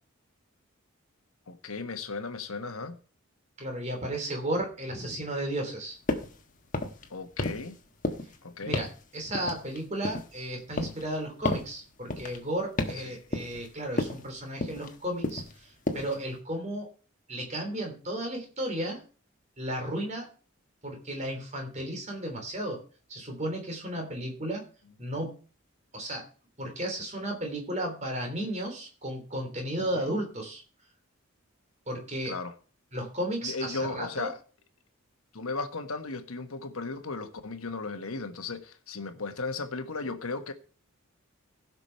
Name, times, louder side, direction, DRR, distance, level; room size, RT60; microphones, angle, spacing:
voice 1, 1.5-3.0 7.1-7.8 8.4-8.8 12.9-13.2 23.9-24.1 29.8-30.1 32.2-32.5 33.4-34.4 35.3-40.5, left 3 dB, 80° left, 1.3 m, -36 dB
voice 2, 3.6-6.0 8.6-8.9 9.1-16.9 17.3-19.0 19.6-20.3 20.8-22.8 23.1-24.6 25.0-25.4 25.9-26.2 26.6-30.6 31.9-32.3 32.9-34.3, right 1 dB, 30° right, 3.1 m, -34 dB
sound 1, 6.1-6.4 6.7-7.1 7.4-7.8 8.0-8.4 8.7-9.0 9.3-10.4 10.8-11.1 11.4-11.7 12.1-12.4 12.8-13.1 13.3-13.7 14.0-14.3 14.6-14.9 15.2-15.6 15.9-16.2, left 2 dB, 35° left, 1.2 m, -32 dB
15.5 x 6.1 x 5.6 m
head